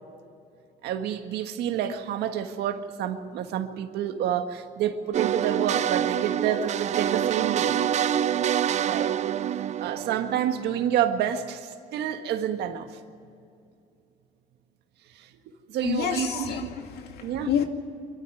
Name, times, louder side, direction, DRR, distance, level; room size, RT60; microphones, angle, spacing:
voice 1, 0.8-7.8 8.8-9.2 9.8-12.9 15.7-16.7 17.2-17.5, right 10 dB, 80° right, 7 dB, 1.7 m, -28 dB
sound 1, 5.1-10.9, right 10 dB, 45° right, 0.5 m, -26 dB
voice 2, 15.8-17.6, left 8 dB, 70° left, 5 dB, 2.4 m, -29 dB
24.0 x 13.5 x 9.5 m, 2.6 s
cardioid pair, 110°, 17 cm